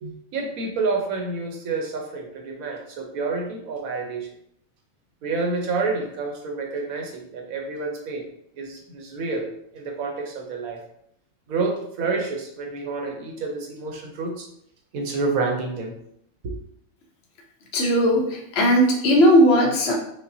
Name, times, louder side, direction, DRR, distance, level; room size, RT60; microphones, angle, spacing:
voice 1, 0.0-4.3 5.2-8.2 8.6-9.5 9.7-10.8 11.5-14.5 14.9-15.9 16.4-16.5, right 3 dB, 85° right, 1 dB, 1.2 m, -28 dB
voice 2, 17.7-19.9, equal, 55° left, -1 dB, 0.9 m, -17 dB
5.3 x 2.2 x 2.6 m, 0.73 s
omnidirectional pair, 1.4 m